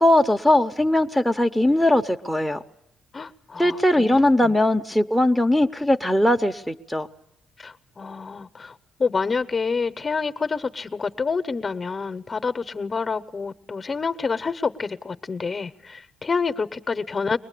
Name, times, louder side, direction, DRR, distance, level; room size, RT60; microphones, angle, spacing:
voice 1, 0.0-2.6 3.6-7.1, left 1 dB, ahead, 0.8 m, -20 dB
voice 2, 3.1-4.5 7.6-17.4, left 4 dB, 30° left, 0.9 m, -28 dB
23.0 x 19.5 x 8.4 m
cardioid pair, 90°, 0 cm